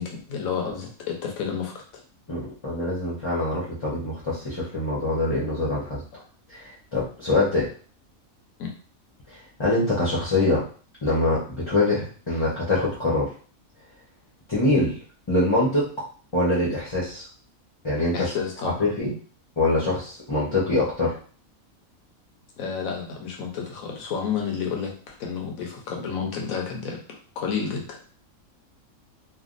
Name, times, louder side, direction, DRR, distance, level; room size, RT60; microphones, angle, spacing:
voice 1, 0.0-2.0 8.6-8.7 18.1-18.9 22.6-28.0, left 6 dB, 75° left, 0 dB, 1.2 m, -31 dB
voice 2, 2.3-6.0 6.5-7.7 9.3-10.6 11.0-13.3 14.5-15.0 15.3-15.9 16.3-17.2 17.8-18.3 18.8-19.2 19.6-21.2, left 2 dB, 25° left, -7 dB, 0.8 m, -24 dB
3.3 x 2.3 x 2.5 m, 0.41 s
omnidirectional pair, 1.5 m